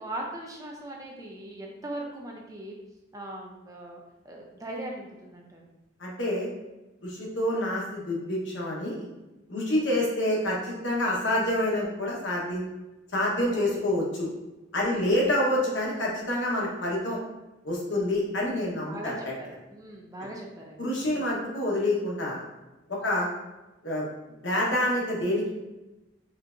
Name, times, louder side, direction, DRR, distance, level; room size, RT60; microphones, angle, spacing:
voice 1, 0.0-2.8 3.1-5.6 9.6-9.9 13.5-13.8 14.8-15.1 18.9-21.3 23.0-23.2, right 1 dB, 15° right, -1 dB, 0.4 m, -40 dB
voice 2, 6.0-6.5 7.0-9.1 9.5-12.7 13.1-14.3 14.7-17.2 17.6-19.3 20.8-22.4 22.9-23.3 23.8-24.0 24.4-25.5, left 1 dB, 65° left, -3 dB, 1.1 m, -27 dB
4.4 x 3.4 x 2.5 m, 1.1 s
head